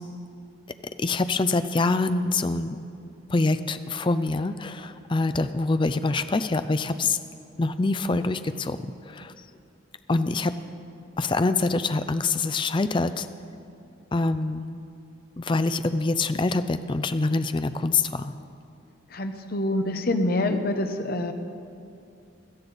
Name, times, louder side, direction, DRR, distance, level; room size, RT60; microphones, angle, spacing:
voice 1, 1.0-2.8 3.3-7.2 7.6-9.3 10.1-10.5 11.2-13.3 14.1-14.8 15.4-18.3, left 3 dB, 25° left, 11 dB, 0.4 m, -25 dB
voice 2, 19.1-21.3, left 1 dB, 50° left, 6 dB, 0.8 m, -26 dB
17.0 x 13.0 x 4.1 m, 2.6 s
head